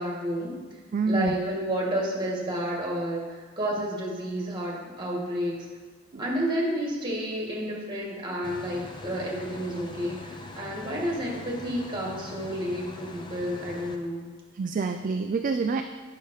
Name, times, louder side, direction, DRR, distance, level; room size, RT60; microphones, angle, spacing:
voice 1, 0.0-0.8 1.0-5.7 6.2-14.2, equal, 20° right, -2 dB, 2.0 m, -30 dB
voice 2, 0.9-1.3 6.1-6.3 14.5-15.8, right 4 dB, 40° right, 7 dB, 0.3 m, -27 dB
sound 1, 8.4-14.0, left 2 dB, 20° left, 0.6 m, -42 dB
9.2 x 6.7 x 4.8 m, 1.4 s
head